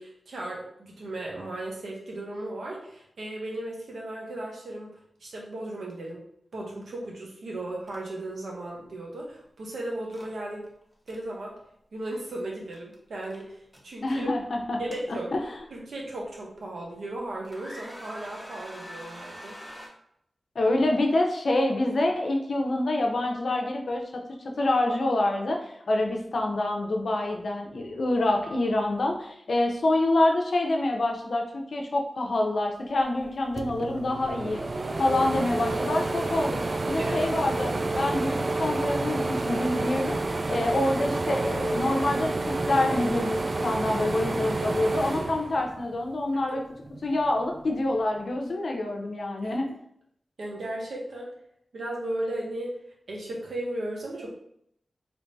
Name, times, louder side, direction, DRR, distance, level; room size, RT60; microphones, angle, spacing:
voice 1, 0.0-6.2 6.5-10.7 11.1-11.6 11.9-14.3 14.8-15.3 15.7-19.6 37.0-37.2 46.5-46.6 49.4-49.6 50.4-51.3 51.7-52.8 53.1-54.3, right 1 dB, 85° right, -2 dB, 0.9 m, -36 dB
sound 1, 7.9-8.0 8.3-8.5 10.1-10.3 10.8-11.2 12.7-12.9 13.2-13.8 14.6-15.6 16.2-16.3 16.9-17.2 17.4-19.9, equal, 5° left, 0.9 m, -44 dB
voice 2, 14.0-14.8 15.1-15.4 20.5-24.2 24.6-34.6 35.0-36.6 36.9-40.2 40.5-46.6 47.0-49.7, left 2 dB, 70° left, 2 dB, 0.6 m, -26 dB
sound 2, 33.2-33.3 33.6-46.2 46.6-47.7, right 2 dB, 50° right, 0.3 m, -29 dB
3.4 x 3.1 x 2.6 m, 0.72 s
cardioid pair, 60°, 0 cm